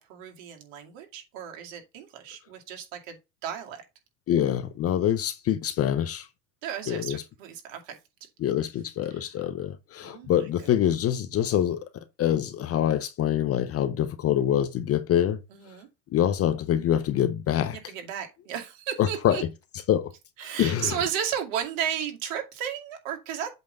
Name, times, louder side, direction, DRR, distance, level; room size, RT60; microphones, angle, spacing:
voice 1, 0.1-3.2 3.4-3.8 6.6-8.0 9.1-9.3 10.0-10.5 15.5-15.9 17.7-19.4 20.4-23.5, right 9 dB, 55° right, 2.4 m, -34 dB
voice 2, 4.3-6.3 6.9-7.2 8.4-11.9 12.2-15.4 16.1-17.9 19.0-19.5 19.9-20.1 20.6-20.9, left 10 dB, 30° left, 0.6 m, -25 dB
8.0 x 3.4 x 5.3 m
hypercardioid pair, 105°, 49 cm